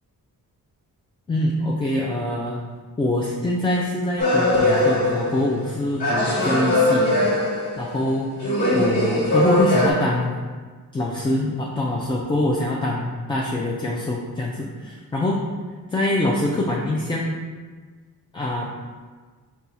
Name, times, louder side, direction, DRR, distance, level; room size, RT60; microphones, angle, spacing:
voice 1, 1.3-2.6 3.0-7.3 7.8-8.3 8.7-10.3 10.9-15.4 15.9-17.4 18.3-18.7, left 1 dB, 15° left, -3 dB, 0.4 m, -24 dB
sound 1, 4.2-5.7 6.0-8.0 8.4-9.9, left 1 dB, 90° left, 1.0 m, -20 dB
4.2 x 2.3 x 4.0 m, 1.5 s
cardioid pair, 90°, 37 cm